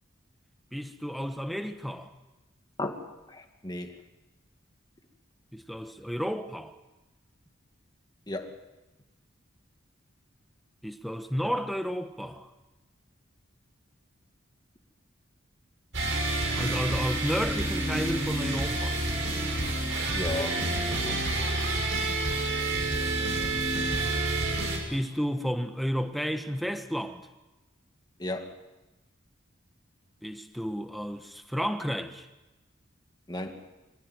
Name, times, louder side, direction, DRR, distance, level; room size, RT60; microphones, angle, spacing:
voice 1, 0.7-2.1 5.5-6.7 10.8-12.5 16.5-19.0 24.9-27.2 30.2-32.3, equal, ahead, 1.3 m, -32 dB
voice 2, 3.3-4.0 8.3-8.6 20.1-20.6 21.0-21.6 28.2-28.6 33.3-33.6, left 2 dB, 20° left, 2.1 m, -35 dB
sound 1, 15.9-24.8, right 2 dB, 65° right, 6.1 m, -28 dB
24.5 x 15.5 x 9.4 m
head